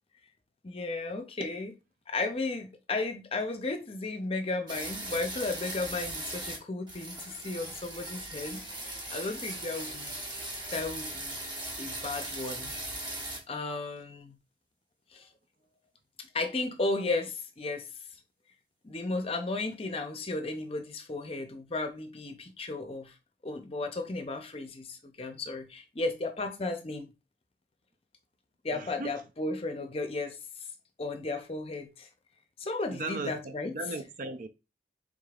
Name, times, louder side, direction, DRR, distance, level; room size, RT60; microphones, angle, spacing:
voice 1, 0.6-1.7 2.1-10.2 10.7-11.4 11.8-12.7 13.5-14.4 15.1-15.3 16.2-17.9 18.8-23.1 23.4-27.1 28.6-30.4 31.0-32.1 32.6-33.7, left 3 dB, 30° left, 0.6 m, -34 dB
sound 1, 4.7-6.6 6.9-13.4, right 2 dB, 25° right, 1.0 m, -39 dB
voice 2, 28.7-29.1 32.9-34.5, right 3 dB, 45° right, 0.4 m, -37 dB
5.0 x 3.6 x 2.4 m
head